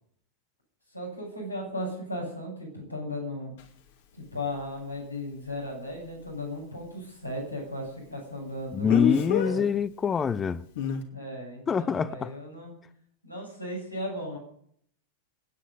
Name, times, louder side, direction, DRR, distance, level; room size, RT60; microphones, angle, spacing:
voice 1, 0.9-3.6 4.2-9.6 11.1-12.7 13.2-14.4, left 1 dB, 90° left, 7.2 m, -36 dB
Speech, 3.6-3.7 8.9-9.5 10.8-11.0, left 8 dB, 55° left, 2.4 m, -27 dB
voice 2, 8.7-10.6 11.7-12.3, left 6 dB, 20° left, 0.7 m, -25 dB
28.0 x 9.6 x 5.4 m
figure-of-eight pair, 90°, 0 cm